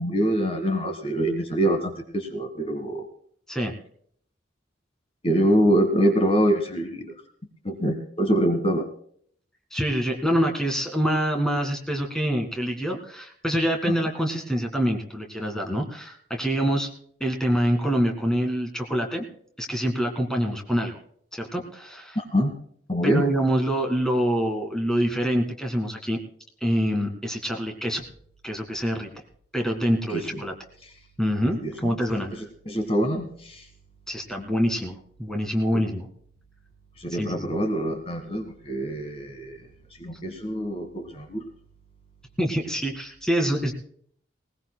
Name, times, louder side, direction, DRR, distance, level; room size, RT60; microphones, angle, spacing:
voice 1, 0.0-3.1 5.2-7.1 7.6-8.9 13.9-14.0 22.1-22.5 22.9-23.3 30.1-30.4 31.6-31.9 32.3-33.7 35.7-35.8 37.0-39.6 40.0-41.4, equal, 30° left, 5 dB, 1.6 m, -25 dB
voice 2, 9.7-16.9 17.2-19.2 19.6-21.0 21.3-22.2 23.0-26.2 26.6-28.0 28.4-29.1 29.5-30.5 31.2-32.3 34.1-36.1 37.2-37.5 42.4-43.7, equal, 5° left, 2 dB, 1.8 m, -25 dB
20.0 x 19.5 x 2.2 m, 0.62 s
head